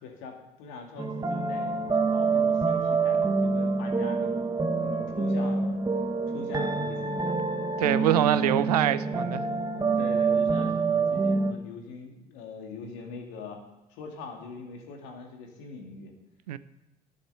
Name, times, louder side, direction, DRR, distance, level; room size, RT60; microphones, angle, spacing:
voice 1, 0.0-1.8 2.1-4.5 4.8-5.9 6.3-7.4 8.1-8.7 9.7-13.6 13.9-16.1, left 4 dB, 70° left, 2.3 m, -42 dB
sound 1, 1.0-11.5, right 4 dB, 20° right, 1.3 m, -26 dB
voice 2, 7.8-9.5 16.5-16.6, right 12 dB, 85° right, 0.5 m, -24 dB
11.5 x 7.9 x 6.8 m
hypercardioid pair, 55°, 20 cm